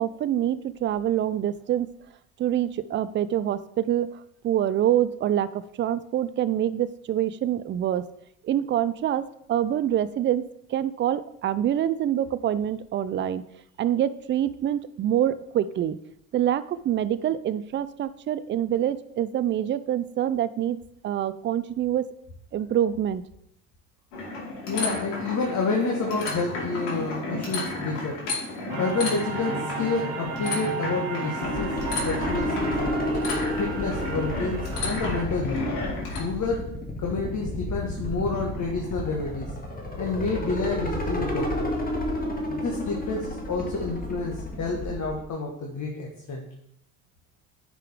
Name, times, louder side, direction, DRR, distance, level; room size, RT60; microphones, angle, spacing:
voice 1, 0.0-1.9 2.4-8.1 8.4-9.2 9.5-10.4 10.7-13.4 13.8-16.0 16.3-20.8 21.0-22.1 22.5-23.2, right 11 dB, 25° right, 15 dB, 0.4 m, -26 dB
sound 1, 24.1-36.2, left 2 dB, 75° left, 2.8 m, -33 dB
voice 2, 24.7-28.2 28.8-31.8 32.0-32.7 33.6-35.7 36.1-39.5 40.0-41.7 42.5-46.4, left 3 dB, 40° left, -1 dB, 1.6 m, -29 dB
sound 2, 28.7-35.2, right 4 dB, 55° right, 1.4 m, -34 dB
sound 3, 31.4-45.2, left 1 dB, 20° left, 1.6 m, -31 dB
9.9 x 5.2 x 3.6 m, 0.74 s
hypercardioid pair, 65°, 46 cm